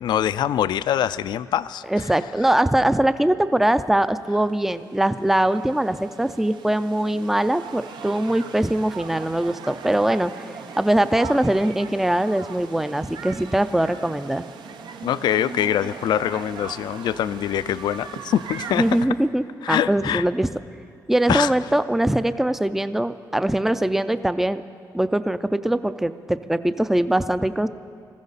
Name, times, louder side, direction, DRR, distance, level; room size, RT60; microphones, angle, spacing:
voice 1, 0.0-1.8 15.0-18.8 19.6-20.2 21.3-21.5, left 10 dB, 75° left, 16 dB, 0.4 m, -24 dB
voice 2, 1.9-10.3 10.8-14.4 18.7-20.5 21.1-24.6 24.9-27.7, right 1 dB, 5° right, 13 dB, 0.4 m, -22 dB
sound 1, 3.9-19.0, right 6 dB, 80° right, 0.8 m, -39 dB
19.5 x 14.5 x 4.1 m, 2.4 s
cardioid pair, 120°, 8 cm